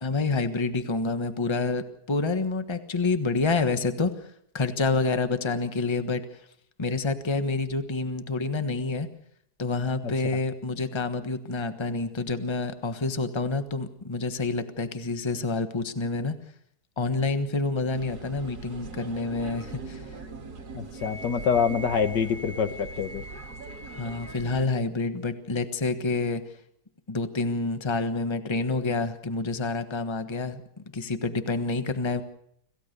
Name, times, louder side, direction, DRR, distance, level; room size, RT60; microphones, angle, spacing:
voice 1, 0.0-6.4 6.8-9.1 9.6-16.4 17.0-20.2 23.9-26.4 27.1-30.6 30.9-32.2, left 3 dB, 15° left, 9 dB, 1.2 m, -28 dB
sound 1, 17.9-24.7, right 4 dB, 60° right, 2.4 m, -41 dB
voice 2, 20.7-23.2, left 7 dB, 75° left, 10 dB, 1.9 m, -26 dB
Wind instrument woodwind instrument, 21.0-24.6, equal, 35° right, 3.4 m, -44 dB
26.5 x 16.0 x 6.8 m, 0.72 s
omnidirectional pair, 1.9 m